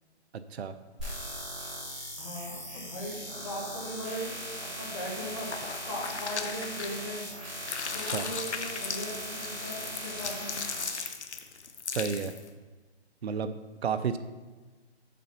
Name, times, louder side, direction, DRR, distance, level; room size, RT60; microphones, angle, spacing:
voice 1, 0.3-0.7 8.0-8.3 11.9-12.3 13.2-14.2, right 6 dB, 70° right, 10 dB, 0.5 m, -32 dB
sound 1, 1.0-11.0, equal, ahead, 2.3 m, -39 dB
voice 2, 2.2-4.3 4.7-5.5 5.9-7.2 7.9-10.6, equal, 25° left, -4 dB, 1.4 m, -38 dB
sound 2, 5.3-7.2 7.6-12.5, left 6 dB, 80° left, 0.8 m, -38 dB
7.5 x 3.8 x 5.4 m, 1.3 s
hypercardioid pair, 175°, 34 cm